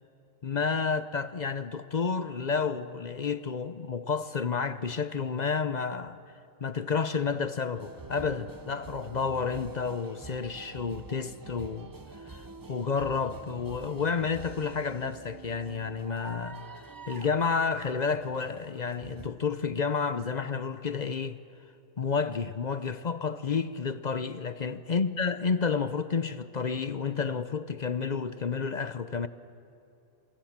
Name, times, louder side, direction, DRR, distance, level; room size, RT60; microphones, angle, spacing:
voice 1, 0.4-6.2 6.6-11.9 12.2-21.4 22.0-29.3, left 5 dB, 40° left, 0.7 m, -30 dB
sound 1, 7.7-19.3, right 4 dB, 25° right, 0.5 m, -46 dB
27.5 x 25.0 x 7.4 m
omnidirectional pair, 1.4 m